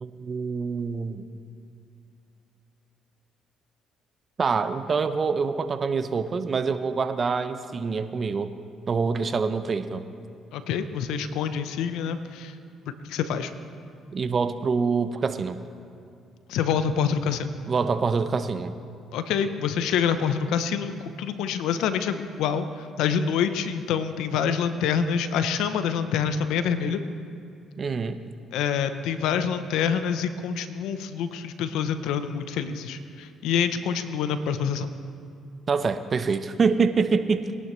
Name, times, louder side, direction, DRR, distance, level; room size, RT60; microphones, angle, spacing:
voice 1, 0.0-1.2 4.4-8.5 8.9-10.1 14.1-15.6 17.7-18.7 27.8-28.2 35.7-37.4, right 5 dB, 40° right, 11 dB, 0.8 m, -25 dB
voice 2, 10.5-12.5 13.0-13.5 16.5-17.5 19.1-27.0 28.5-34.9, left 7 dB, 80° left, 10 dB, 0.8 m, -26 dB
22.0 x 11.0 x 3.2 m, 2.5 s
supercardioid pair, 70°, 0 cm